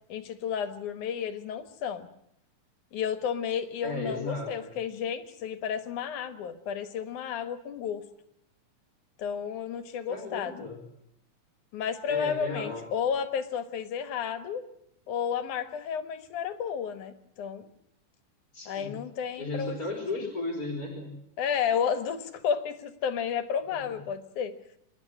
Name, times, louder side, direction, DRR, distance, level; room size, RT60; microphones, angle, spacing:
voice 1, 0.1-2.1 2.9-8.0 9.2-10.7 11.7-14.6 15.1-17.7 18.7-19.8 20.1-20.3 21.4-24.5, left 7 dB, 75° left, 10 dB, 2.8 m, -32 dB
voice 2, 3.8-4.7 10.1-10.8 12.0-12.8 18.5-19.0 19.4-21.1 23.7-23.8, left 2 dB, 25° left, 1 dB, 4.1 m, -35 dB
27.0 x 11.5 x 9.9 m, 0.77 s
omnidirectional pair, 3.6 m